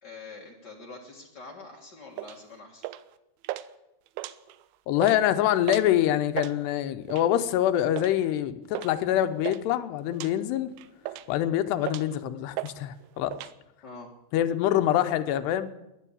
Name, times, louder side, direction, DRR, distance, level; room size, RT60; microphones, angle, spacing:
voice 1, 0.0-2.9 13.8-14.1, left 3 dB, 60° left, -1 dB, 1.1 m, -45 dB
sound 1, 2.2-2.4 2.8-3.1 3.4-3.7 4.1-4.6 4.9-5.2 5.7-5.9 6.2-6.5 7.1-7.4 8.0-8.2 8.7-8.9 9.2-9.6 10.1-10.3 10.8-11.4 11.8-12.2 12.6-12.8 13.0-13.5, right 16 dB, 80° right, 2.4 m, -35 dB
voice 2, 4.9-10.7 11.3-13.4 14.3-15.7, left 12 dB, 85° left, 10 dB, 3.0 m, -25 dB
14.0 x 11.0 x 8.6 m, 0.92 s
omnidirectional pair, 4.7 m